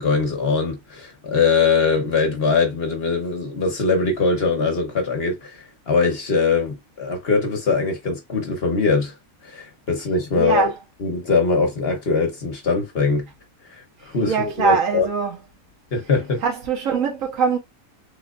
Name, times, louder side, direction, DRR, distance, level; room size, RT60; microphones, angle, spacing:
voice 1, 0.0-9.1 9.4-10.7 11.0-13.3 13.7-15.1 15.9-16.4, left 4 dB, 50° left, 1.1 m, -22 dB
voice 2, 10.4-10.7 14.2-15.4 16.4-17.6, right 5 dB, 65° right, 1.3 m, -22 dB
3.7 x 3.1 x 2.4 m
omnidirectional pair, 1.5 m